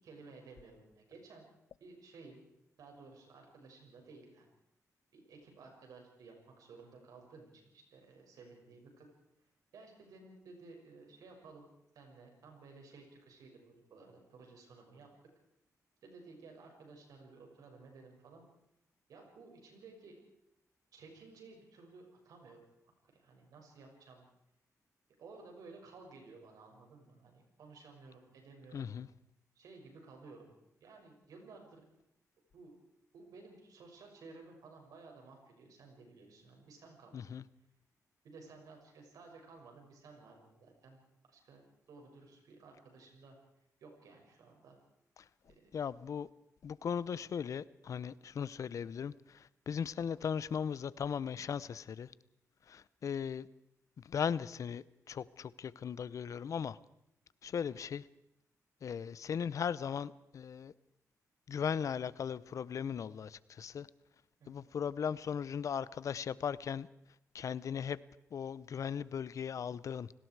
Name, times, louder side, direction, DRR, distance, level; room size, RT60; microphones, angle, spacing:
voice 1, 0.0-1.5 1.8-2.4 2.8-4.5 5.1-9.1 9.7-11.7 11.9-15.1 16.0-18.5 19.1-20.2 20.9-22.6 23.1-24.2 25.2-28.9 29.5-30.5 30.8-31.8 32.5-32.7 33.1-37.4 38.2-41.0 41.2-41.6 41.9-43.4 43.8-44.8 45.5-45.7 64.4-64.7, right 3 dB, 85° right, 2 dB, 6.6 m, -55 dB
voice 2, 28.7-29.1 37.1-37.4 45.2-45.3 45.7-46.3 46.6-52.1 52.7-53.5 54.0-56.8 57.4-58.1 58.8-60.7 61.5-63.9 64.5-66.9 67.3-68.0 68.3-70.1, left 7 dB, 65° left, 19 dB, 0.7 m, -38 dB
29.0 x 19.0 x 4.8 m, 0.80 s
cardioid pair, 90°, 6 cm